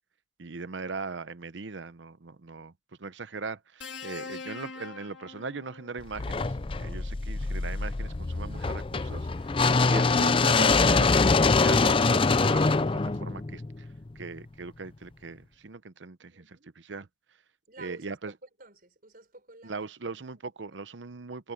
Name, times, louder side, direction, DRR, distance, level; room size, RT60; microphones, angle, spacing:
voice 1, 0.4-2.7 3.0-9.6 9.9-11.1 11.4-13.9 14.1-17.1 17.8-18.3 19.6-21.5, right 4 dB, 90° right, 0.8 m, -39 dB
sound 1, 3.8-6.1 7.4-7.6, left 4 dB, 85° left, 3.1 m, -42 dB
sound 2, 6.2-14.2, left 4 dB, 30° left, 0.5 m, -24 dB
voice 2, 16.2-16.7 17.7-20.2, right 2 dB, 50° right, 5.3 m, -52 dB
head